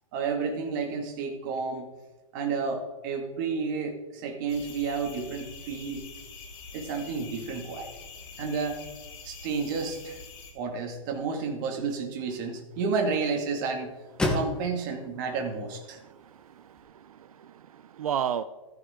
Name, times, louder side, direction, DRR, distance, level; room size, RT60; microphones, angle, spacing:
voice 1, 0.1-1.9 2.3-6.0 6.7-7.9 8.4-8.8 9.2-10.2 10.5-13.9 14.3-16.0, right 5 dB, 35° right, 2.3 m, -31 dB
sound 1, 4.5-10.5, left 4 dB, 40° left, 3.4 m, -45 dB
sound 2, 10.6-16.8, left 2 dB, 5° left, 1.4 m, -37 dB
voice 2, 16.6-18.4, right 9 dB, 85° right, 0.7 m, -33 dB
14.5 x 14.5 x 3.8 m
hypercardioid pair, 165°, 18 cm